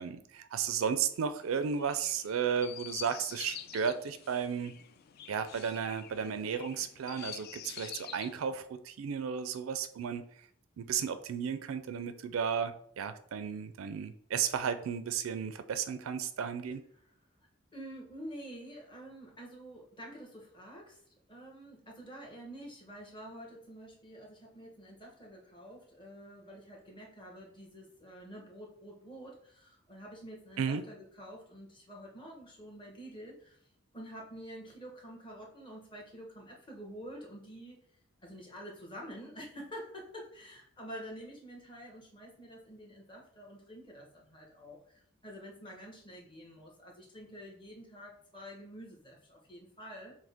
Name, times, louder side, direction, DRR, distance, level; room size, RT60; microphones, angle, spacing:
voice 1, 0.0-4.8 5.3-10.2 10.8-16.8 30.6-30.8, right 7 dB, 80° right, 11 dB, 0.4 m, -34 dB
Chirp tweet, 1.1-8.4, left 10 dB, 50° left, 0.3 m, -47 dB
voice 2, 17.7-21.0 21.3-33.6 33.9-37.9 38.2-50.1, equal, 25° left, -1 dB, 1.0 m, -48 dB
6.1 x 2.1 x 3.5 m, 0.63 s
head